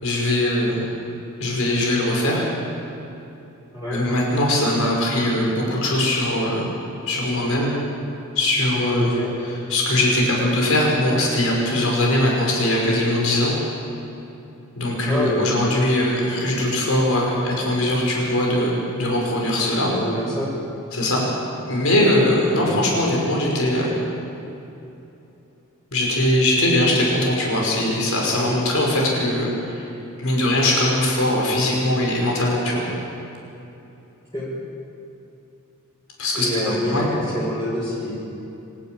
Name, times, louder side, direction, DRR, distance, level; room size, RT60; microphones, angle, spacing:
voice 1, 0.0-0.9 1.4-2.4 3.9-6.7 7.1-7.7 8.4-9.1 9.7-13.5 14.8-19.9 20.9-21.2 21.7-23.9 25.9-29.9 30.2-32.8 36.2-37.1, left 1 dB, 75° left, -2 dB, 5.7 m, -21 dB
voice 2, 8.9-9.3 15.1-15.6 19.9-20.5 22.5-22.8 34.3-34.5 36.4-37.1 37.3-38.1, left 1 dB, 20° left, -10 dB, 5.8 m, -26 dB
26.5 x 12.5 x 9.3 m, 2.9 s
head